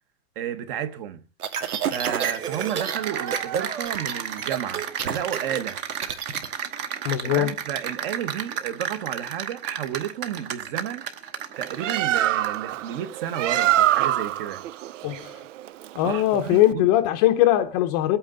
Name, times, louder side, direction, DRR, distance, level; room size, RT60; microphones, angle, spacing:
voice 1, 0.3-1.2 1.9-5.8 7.2-11.0 11.6-14.6 16.0-16.9, right 10 dB, 40° right, 1.4 m, -32 dB
sound 1, 1.4-3.0 3.3-3.6 3.9-6.5, right 8 dB, 85° right, 2.3 m, -29 dB
Cheering / Applause, 2.3-12.7, right 8 dB, 25° right, 1.0 m, -33 dB
voice 2, 7.0-7.5 15.0-15.2 15.9-18.2, left 13 dB, 25° left, 0.8 m, -20 dB
Bird, 11.5-16.7, right 13 dB, 60° right, 0.6 m, -25 dB
21.5 x 8.8 x 3.9 m
hypercardioid pair, 160°, 44 cm